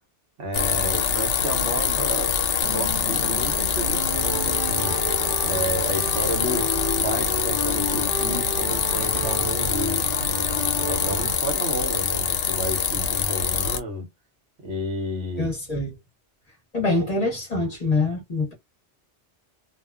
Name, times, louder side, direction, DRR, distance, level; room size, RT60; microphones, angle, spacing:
voice 1, 0.4-2.4 2.7-4.9 5.4-6.7 7.0-10.0 10.9-14.1 14.6-15.5 17.1-17.2, right 1 dB, 80° right, 1.3 m, -31 dB
sound 1, 0.5-13.8, left 7 dB, 85° left, 0.9 m, -24 dB
sound 2, 2.6-11.4, right 2 dB, 55° right, 0.8 m, -32 dB
voice 2, 15.4-16.0 16.7-18.5, left 2 dB, 40° left, 0.9 m, -25 dB
2.8 x 2.2 x 2.2 m
omnidirectional pair, 1.2 m